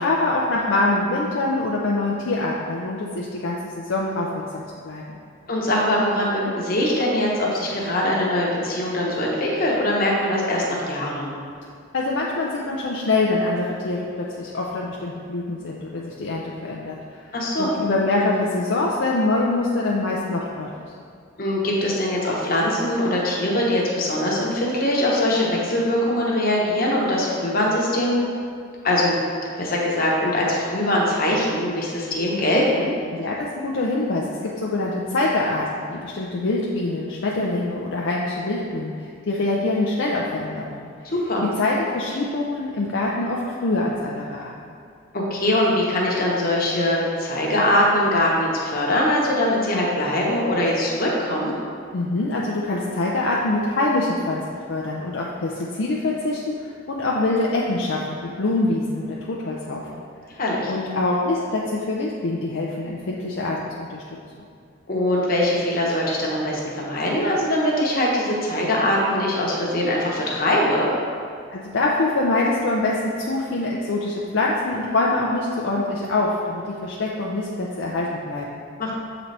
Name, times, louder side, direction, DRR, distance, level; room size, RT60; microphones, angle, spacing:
voice 1, 0.0-5.2 11.9-17.0 17.6-20.7 33.1-40.9 41.6-44.5 51.9-54.4 54.7-60.0 60.7-64.0 64.3-64.4 71.5-78.6, left 2 dB, 65° left, -3 dB, 0.5 m, -24 dB
voice 2, 5.5-11.3 17.3-17.7 21.4-28.3 28.8-29.2 29.6-32.9 41.0-41.4 45.1-51.5 60.4-60.7 64.9-70.9 78.8-79.0, left 1 dB, 45° left, -3 dB, 1.0 m, -22 dB
7.2 x 3.9 x 3.3 m, 2.3 s
head